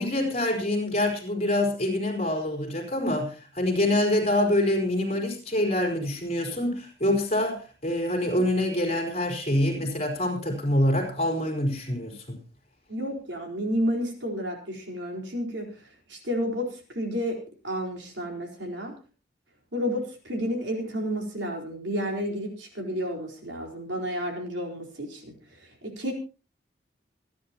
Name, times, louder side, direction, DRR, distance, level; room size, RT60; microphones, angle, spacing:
voice 1, 0.0-12.4, left 1 dB, 35° left, 4.4 m, -26 dB
voice 2, 12.9-17.4 17.6-18.9 19.7-25.3 25.8-26.1, equal, 85° right, 4.3 m, -31 dB
26.5 x 10.5 x 3.0 m
head